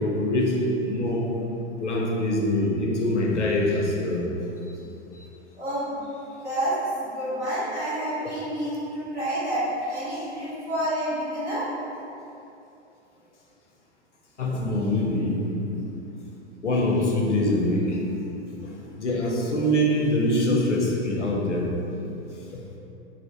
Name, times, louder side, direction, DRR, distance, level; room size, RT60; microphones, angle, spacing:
voice 1, 0.0-1.6 1.8-4.4 5.1-5.3 14.4-15.7 16.6-18.2 18.6-21.8, left 1 dB, 85° left, -1 dB, 0.6 m, -24 dB
voice 2, 5.5-6.0 6.4-6.8 7.0-11.8, right 1 dB, 70° right, -10 dB, 1.4 m, -29 dB
3.6 x 2.4 x 3.3 m, 2.8 s
figure-of-eight pair, 100°, 35 cm